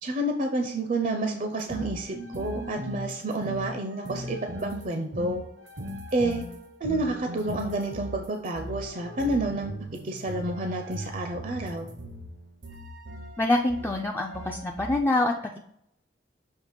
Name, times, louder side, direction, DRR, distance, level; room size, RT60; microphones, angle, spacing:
voice 1, 0.0-5.4 6.1-6.4 6.8-9.7 10.0-11.9, right 2 dB, 45° right, 4 dB, 0.5 m, -29 dB
sound 1, 1.6-15.0, equal, 85° right, 1.0 m, -39 dB
voice 2, 13.4-15.3, left 2 dB, 10° left, 1 dB, 0.3 m, -25 dB
6.4 x 2.9 x 5.1 m, 0.73 s
head